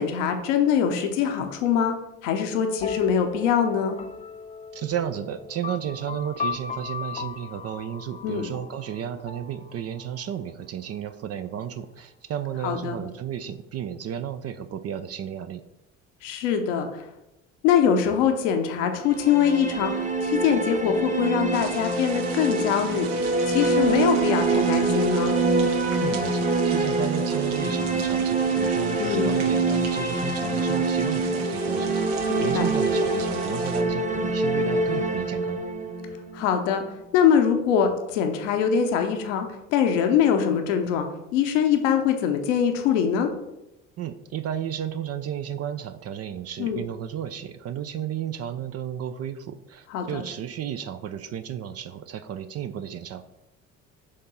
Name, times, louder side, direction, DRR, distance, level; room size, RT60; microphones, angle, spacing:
voice 1, 0.0-2.0 2.2-4.0 8.2-8.5 12.6-13.0 16.2-17.0 17.6-23.1 23.5-25.4 29.0-29.4 32.3-32.7 36.3-41.1 41.3-43.3 46.6-46.8 49.9-50.3, left 8 dB, 75° left, 5 dB, 0.8 m, -23 dB
sound 1, 2.8-10.4, left 5 dB, 20° left, 0.4 m, -37 dB
voice 2, 4.7-15.6 26.0-35.6 44.0-53.2, right 9 dB, 40° right, 10 dB, 0.5 m, -33 dB
sound 2, 19.0-36.9, right 3 dB, 20° right, 1.0 m, -25 dB
sound 3, 21.5-33.8, right 7 dB, 70° right, 0.9 m, -40 dB
6.7 x 3.7 x 5.5 m, 0.93 s
hypercardioid pair, 55°, 38 cm